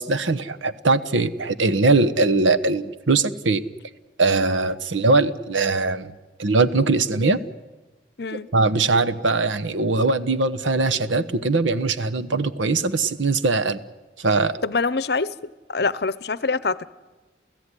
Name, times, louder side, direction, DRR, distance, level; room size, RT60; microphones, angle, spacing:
voice 1, 0.0-3.6 4.2-6.1 6.4-7.4 8.3-13.8 14.2-14.6, right 3 dB, 85° right, 11 dB, 1.1 m, -21 dB
voice 2, 14.6-15.3 15.7-16.9, left 4 dB, 55° left, 18 dB, 0.7 m, -24 dB
29.0 x 15.5 x 9.9 m, 1.2 s
head